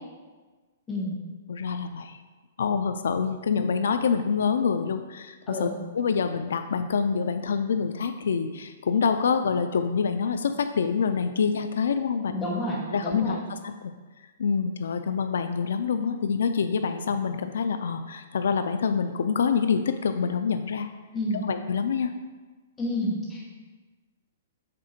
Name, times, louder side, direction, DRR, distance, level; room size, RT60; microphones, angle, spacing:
voice 1, 1.5-2.2 2.6-5.7 5.9-12.3 12.9-13.9 14.4-20.9 21.4-22.1, left 6 dB, 75° left, 9 dB, 0.3 m, -26 dB
voice 2, 12.3-13.4 21.1-21.4 22.8-23.5, left 1 dB, 10° left, -5 dB, 1.2 m, -30 dB
7.6 x 3.6 x 4.3 m, 1.3 s
hypercardioid pair, 175°, 0 cm